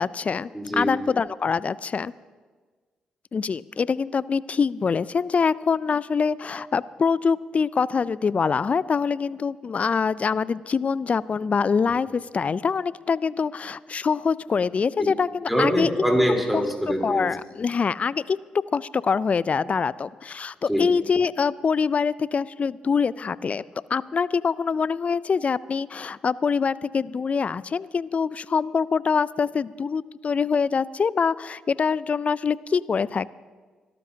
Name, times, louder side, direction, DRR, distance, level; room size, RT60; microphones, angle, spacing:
voice 1, 0.0-2.1 3.3-15.9 16.5-16.6 17.0-18.4 18.7-23.6 23.9-33.3, left 5 dB, 45° left, 19 dB, 0.4 m, -24 dB
voice 2, 0.5-0.9 15.5-17.2 20.7-20.8, equal, ahead, 0 dB, 3.8 m, -23 dB
26.0 x 12.0 x 2.8 m, 1.4 s
hypercardioid pair, 45°, 3 cm